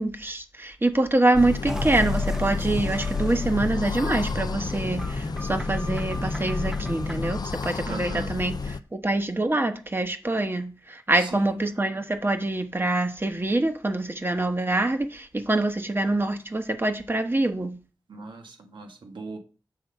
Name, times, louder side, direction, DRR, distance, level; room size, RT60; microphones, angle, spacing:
voice 1, 0.0-17.8, right 2 dB, 25° right, 1.2 m, -25 dB
sound 1, 1.3-8.8, left 4 dB, 55° left, 0.4 m, -30 dB
sound 2, 1.7-7.5, equal, 5° right, 0.8 m, -35 dB
voice 2, 7.8-8.3 11.1-11.6 18.1-19.4, right 3 dB, 80° right, 1.6 m, -38 dB
7.7 x 3.8 x 6.6 m
cardioid pair, 60°, 8 cm